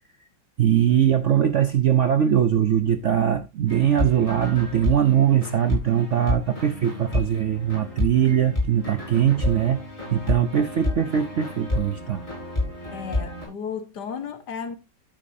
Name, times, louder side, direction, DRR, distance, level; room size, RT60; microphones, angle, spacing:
voice 1, 0.6-9.8 10.1-12.2, right 9 dB, 60° right, 0.8 m, -21 dB
sound 1, 3.7-13.5, left 2 dB, 15° left, 6.3 m, -30 dB
voice 2, 12.9-14.8, left 6 dB, 65° left, 1.9 m, -34 dB
12.0 x 8.8 x 2.7 m
omnidirectional pair, 2.0 m